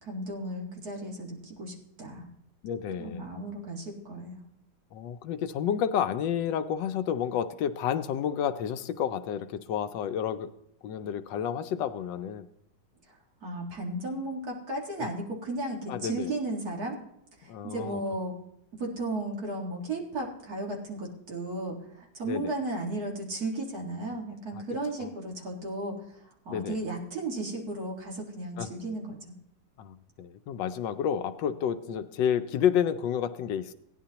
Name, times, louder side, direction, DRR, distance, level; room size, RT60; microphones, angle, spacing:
voice 1, 0.0-2.3 3.0-4.4 13.4-17.0 17.4-18.4 18.8-26.0 26.5-29.2, right 2 dB, 55° right, -1 dB, 2.2 m, -35 dB
voice 2, 2.6-3.3 4.9-10.5 10.8-12.5 15.0-15.1 15.9-16.3 17.5-18.0 22.2-22.5 24.5-24.6 25.0-25.1 26.5-26.8 28.6-28.7 29.8-33.7, left 8 dB, 80° left, 10 dB, 1.2 m, -30 dB
16.5 x 10.0 x 2.9 m, 0.78 s
omnidirectional pair, 2.0 m